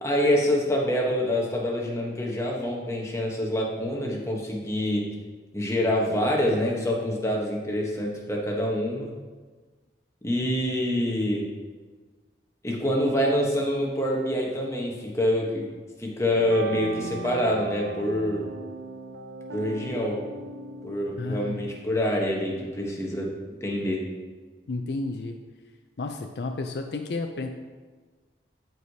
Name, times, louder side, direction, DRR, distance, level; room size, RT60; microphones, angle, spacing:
voice 1, 0.0-5.1 5.5-9.2 10.2-11.4 12.6-15.7 16.0-18.5 19.5-20.2 20.8-23.3 23.6-24.0, left 1 dB, 15° left, -1 dB, 1.1 m, -26 dB
sound 1, 16.3-22.0, right 2 dB, 90° right, 0.6 m, -38 dB
voice 2, 21.2-21.6 24.7-25.4 26.0-27.5, left 3 dB, 65° left, 4 dB, 0.5 m, -31 dB
13.0 x 4.7 x 2.8 m, 1.4 s
head